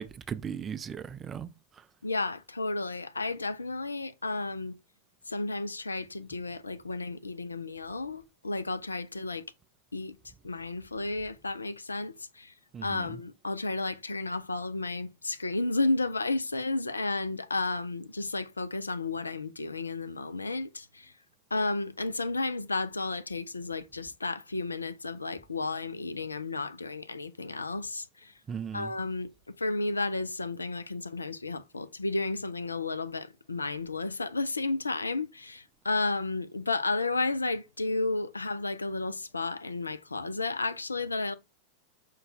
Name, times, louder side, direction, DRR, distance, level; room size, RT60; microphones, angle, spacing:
voice 1, 0.0-1.5 12.7-13.2 28.5-28.9, right 7 dB, 20° right, 0.4 m, -37 dB
voice 2, 2.0-4.8 5.3-9.4 9.9-10.2 10.4-12.5 12.8-21.1 21.5-28.3 28.7-29.3 29.6-41.3, left 3 dB, 80° left, 0.3 m, -32 dB
5.1 x 2.2 x 4.0 m
figure-of-eight pair, 90°, 0 cm